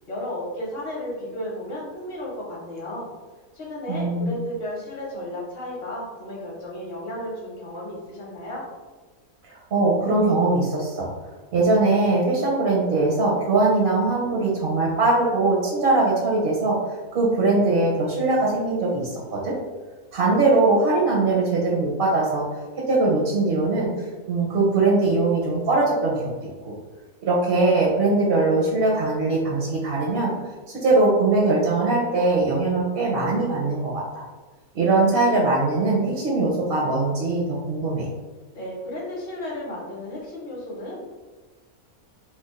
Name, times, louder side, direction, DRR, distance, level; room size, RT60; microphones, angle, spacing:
voice 1, 0.1-3.1 3.5-8.6 38.5-41.0, left 1 dB, 45° left, -4 dB, 1.1 m, -33 dB
voice 2, 3.9-4.3 9.7-11.1 11.5-16.8 17.1-19.5 20.1-22.4 22.9-23.9 24.3-26.2 26.6-26.7 27.2-30.3 30.7-34.2 34.7-38.0, right 3 dB, 55° right, -3 dB, 0.7 m, -21 dB
3.1 x 2.3 x 3.6 m, 1.3 s
omnidirectional pair, 1.6 m